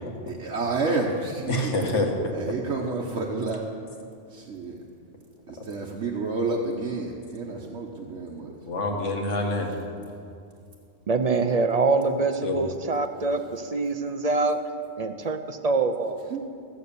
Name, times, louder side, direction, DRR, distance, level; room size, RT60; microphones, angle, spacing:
voice 1, 0.3-1.6 2.3-3.6 4.3-4.8 5.5-8.5 16.3-16.4, right 3 dB, 70° right, -2 dB, 1.3 m, -29 dB
voice 2, 1.5-2.3 7.6-7.7 8.7-9.8 12.4-12.6, left 2 dB, 75° left, 1 dB, 1.9 m, -27 dB
voice 3, 11.1-14.6 14.9-16.2, right 3 dB, 45° right, 8 dB, 0.6 m, -25 dB
15.5 x 7.9 x 6.8 m, 2.5 s
omnidirectional pair, 1.3 m